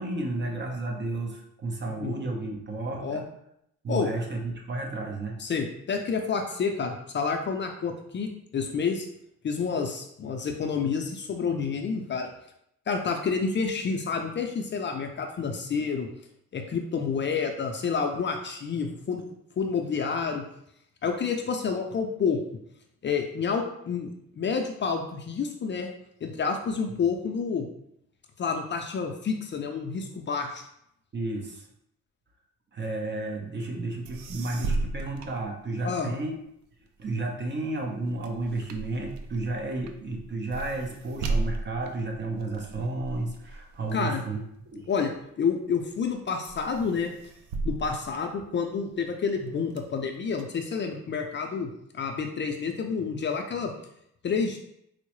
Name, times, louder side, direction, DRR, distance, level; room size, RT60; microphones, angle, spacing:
voice 1, 0.0-3.3 3.8-5.4 31.1-31.6 32.7-36.3 37.0-44.9, right 2 dB, 35° right, 1 dB, 0.8 m, -32 dB
voice 2, 5.4-9.1 9.4-12.3 12.9-16.1 16.5-20.5 21.0-22.4 23.0-25.9 26.2-27.7 28.4-30.6 35.8-36.1 43.9-44.2 44.9-45.1 45.4-47.1 47.6-53.7 54.2-54.6, left 5 dB, 40° left, 3 dB, 0.5 m, -29 dB
sound 1, 33.8-33.9 34.0-36.2 36.6-45.3 45.8-46.2 46.4-48.9 49.4-50.4, right 3 dB, 70° right, 0.5 m, -36 dB
4.5 x 2.0 x 3.1 m, 0.74 s
cardioid pair, 90°, 30 cm